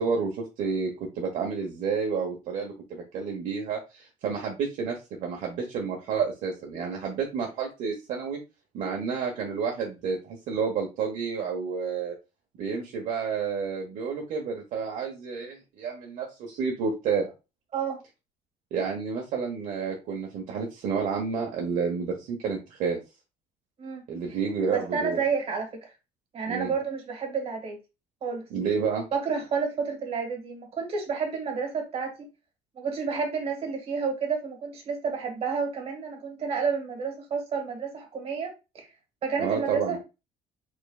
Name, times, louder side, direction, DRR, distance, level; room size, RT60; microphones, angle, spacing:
voice 1, 0.0-8.4 8.7-12.1 12.6-17.3 18.7-23.0 24.1-25.2 26.5-26.7 28.5-29.0 39.4-40.0, right 5 dB, 65° right, 0 dB, 1.1 m, -30 dB
voice 2, 24.6-25.9 26.3-27.8 28.2-28.5 29.1-32.3 32.8-38.9 39.2-40.0, right 5 dB, 45° right, 2 dB, 1.9 m, -30 dB
4.9 x 3.8 x 2.4 m, 0.28 s
cardioid pair, 135°, 14 cm